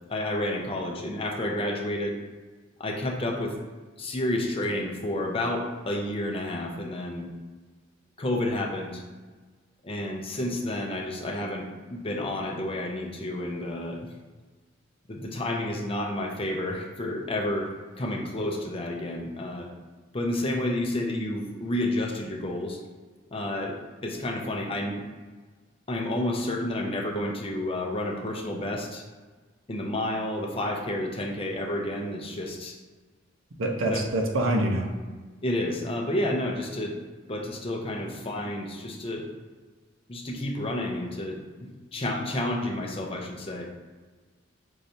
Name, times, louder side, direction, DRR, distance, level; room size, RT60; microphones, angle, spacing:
voice 1, 0.1-2.2 2.8-3.6 4.0-7.3 8.2-9.0 9.8-14.1 15.1-17.7 18.0-19.7 20.1-22.8 23.3-25.0 25.9-29.0 29.7-32.8 33.9-34.0 35.4-37.0 37.3-39.3 40.1-41.4 41.9-43.7, left 1 dB, 30° left, 1 dB, 0.5 m, -30 dB
voice 2, 33.6-34.9, right 1 dB, 85° right, 2 dB, 0.7 m, -25 dB
5.5 x 3.1 x 2.7 m, 1.4 s
head